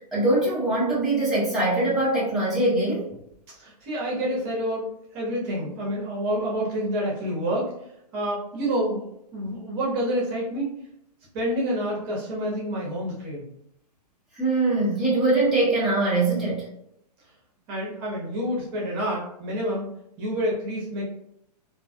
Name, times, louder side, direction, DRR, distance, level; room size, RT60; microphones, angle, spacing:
voice 1, 0.1-3.1 14.3-16.6, right 2 dB, ahead, -10 dB, 1.3 m, -22 dB
voice 2, 3.5-7.7 8.1-10.7 11.3-13.5 17.7-19.9 20.2-21.0, equal, 40° right, -4 dB, 1.1 m, -28 dB
3.8 x 2.3 x 2.3 m, 0.76 s
figure-of-eight pair, 115°, 21 cm